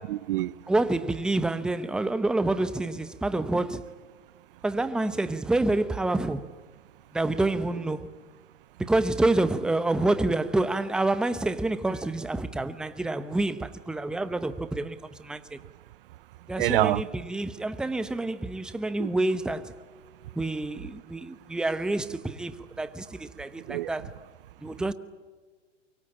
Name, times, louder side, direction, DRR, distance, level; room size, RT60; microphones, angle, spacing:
voice 1, 0.0-0.5 16.6-17.0 19.0-19.1 23.7-23.9, right 16 dB, 45° right, 0.7 m, -26 dB
voice 2, 0.7-3.8 4.6-6.4 7.1-8.1 8.8-15.6 16.5-19.8 20.3-24.1 24.6-24.9, right 2 dB, ahead, 0.8 m, -28 dB
25.0 x 23.5 x 8.7 m
hypercardioid pair, 135°, 37 cm